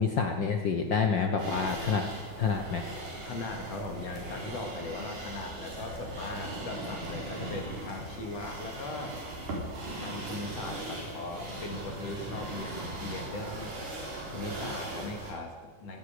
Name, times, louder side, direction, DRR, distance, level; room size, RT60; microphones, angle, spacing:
voice 1, 0.0-2.0 2.4-2.9, left 5 dB, 85° left, 4 dB, 1.0 m, -28 dB
sound 1, 1.4-15.3, right 1 dB, 75° right, 5.3 m, -39 dB
voice 2, 3.2-9.2 10.0-13.7 14.3-16.0, left 2 dB, 55° left, 2 dB, 3.0 m, -39 dB
19.0 x 14.5 x 5.1 m, 1.4 s
omnidirectional pair, 3.7 m